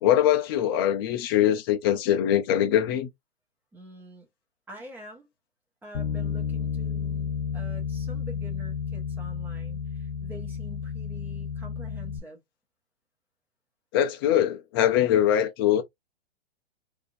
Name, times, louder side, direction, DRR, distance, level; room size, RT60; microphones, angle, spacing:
voice 1, 0.0-3.1 13.9-15.8, left 11 dB, 20° left, 0.4 m, -22 dB
voice 2, 3.7-4.3 4.7-5.3 5.8-12.4, equal, 5° right, 1.0 m, -46 dB
Bass guitar, 5.9-12.2, left 6 dB, 80° left, 0.9 m, -32 dB
3.5 x 2.6 x 2.5 m
hypercardioid pair, 140°, 33 cm